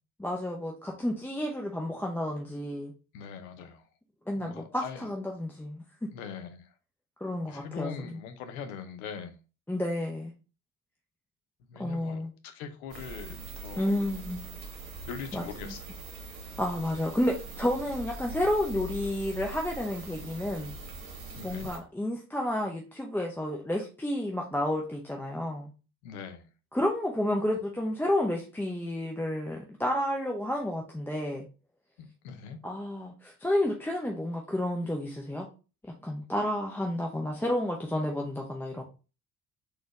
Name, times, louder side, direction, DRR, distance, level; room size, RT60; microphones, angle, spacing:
voice 1, 0.2-2.9 4.3-6.1 7.2-7.9 9.7-10.3 11.8-12.3 13.8-14.4 15.3-15.7 16.6-20.7 21.4-25.7 26.7-31.5 32.6-35.5 35.8-38.8, left 1 dB, 5° left, 0.6 m, -31 dB
voice 2, 3.1-3.9 4.3-5.1 6.1-6.7 7.5-9.4 11.7-14.1 15.0-16.0 21.3-21.7 26.0-26.5 32.0-32.6, left 6 dB, 70° left, 0.7 m, -42 dB
sound 1, 12.9-21.8, right 2 dB, 45° right, 1.2 m, -42 dB
4.0 x 2.5 x 3.0 m
figure-of-eight pair, 50°, 44 cm